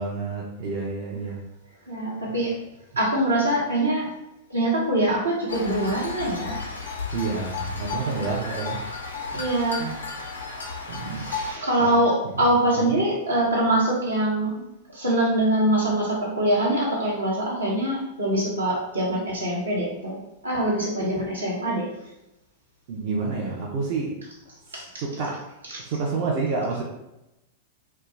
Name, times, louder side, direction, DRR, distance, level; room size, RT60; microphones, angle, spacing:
voice 1, 0.0-1.4 7.1-8.8 9.3-9.4 9.8-10.0 10.9-11.3 11.8-11.9 12.8-13.0 22.9-24.1 25.0-25.4 25.9-26.8, right 4 dB, 50° right, -2 dB, 0.5 m, -29 dB
voice 2, 1.9-2.5 3.0-4.1 4.5-6.6 9.3-9.9 11.1-14.6 14.9-20.2 20.4-21.9 24.7-25.0 25.7-25.8, right 1 dB, 80° right, -5 dB, 1.0 m, -24 dB
sound 1, 5.5-11.6, left 4 dB, 80° left, 0.5 m, -33 dB
2.4 x 2.2 x 3.0 m, 0.90 s
figure-of-eight pair, 95°, 0 cm